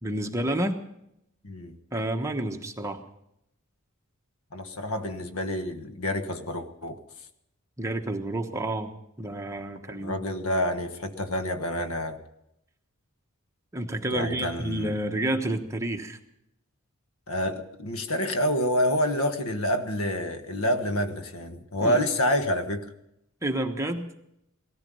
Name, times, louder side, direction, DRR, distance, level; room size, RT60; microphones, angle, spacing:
voice 1, 0.0-0.8 1.9-3.0 7.8-10.2 13.7-16.2 21.8-22.0 23.4-24.1, right 1 dB, 15° right, 4 dB, 1.2 m, -29 dB
voice 2, 1.4-1.7 4.5-7.0 9.9-12.2 14.1-14.9 17.3-22.9, left 1 dB, 75° left, 8 dB, 1.3 m, -28 dB
18.0 x 14.0 x 5.5 m, 0.80 s
head